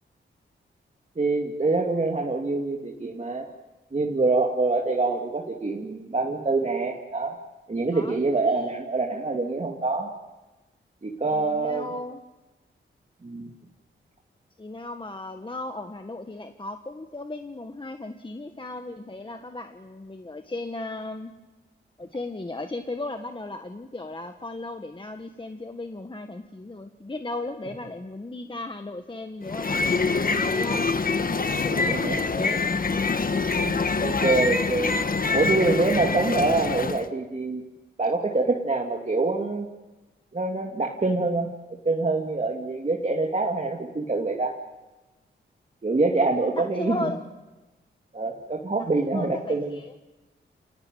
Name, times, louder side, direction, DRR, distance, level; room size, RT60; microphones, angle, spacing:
voice 1, 1.2-3.5 3.9-7.3 7.7-10.1 11.0-11.9 13.2-13.5 31.5-32.2 33.6-33.7 34.0-34.9 35.3-37.6 38.0-39.7 40.3-41.5 41.8-44.5 45.8-47.1 48.1-49.8, right 3 dB, 35° right, 0 dB, 2.6 m, -25 dB
voice 2, 11.3-12.2 14.6-21.3 22.0-30.9 31.6-32.7 46.5-47.3 49.0-49.9, left 2 dB, 25° left, 6 dB, 1.5 m, -36 dB
sound 1, 29.4-37.1, left 4 dB, 45° left, 1.4 m, -25 dB
27.5 x 19.0 x 9.3 m, 1.1 s
cardioid pair, 65°, 20 cm